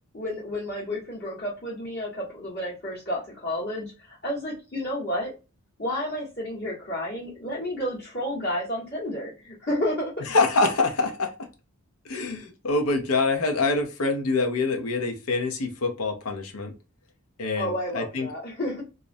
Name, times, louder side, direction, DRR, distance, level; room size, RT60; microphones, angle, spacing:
voice 1, 0.1-5.3 5.8-10.1 17.6-18.8, left 1 dB, 50° left, -7 dB, 1.1 m, -31 dB
voice 2, 10.3-11.3 12.0-16.7 17.4-18.3, left 3 dB, 75° left, 4 dB, 0.5 m, -25 dB
2.4 x 2.0 x 2.5 m, 0.30 s
head